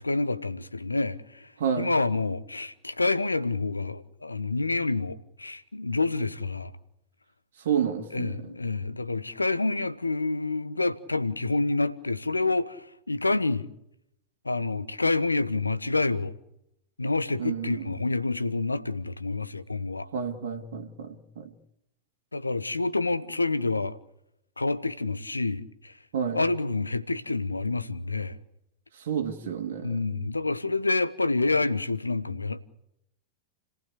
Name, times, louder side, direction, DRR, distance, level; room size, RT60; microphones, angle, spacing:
voice 1, 0.0-1.5 1.8-6.7 8.1-13.7 14.4-16.3 17.0-20.1 22.3-24.0 24.6-25.9 26.3-28.4 29.8-32.6, left 3 dB, 85° left, 1.1 m, -28 dB
voice 2, 1.6-1.9 7.7-8.3 17.4-17.9 20.1-21.4 26.1-26.4 29.0-30.0, right 7 dB, 65° right, 2.1 m, -30 dB
29.5 x 15.5 x 8.3 m
figure-of-eight pair, 90°, 0 cm